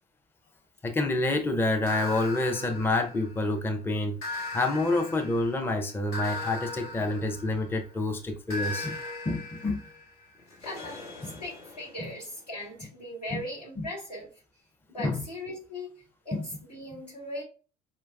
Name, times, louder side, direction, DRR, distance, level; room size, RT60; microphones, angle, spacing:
voice 1, 0.8-9.0 9.3-9.8 11.2-11.3 13.3-13.4 13.8-13.9 15.0-15.2 16.3-16.4 16.9-17.0, left 2 dB, 10° left, 0.5 m, -28 dB
sound 1, 1.9-3.6 4.2-7.9 8.5-12.2, left 3 dB, 70° left, 0.9 m, -39 dB
voice 2, 10.6-14.3 14.9-17.4, left 1 dB, 90° left, 1.3 m, -39 dB
4.4 x 2.2 x 2.3 m
figure-of-eight pair, 55°, 21 cm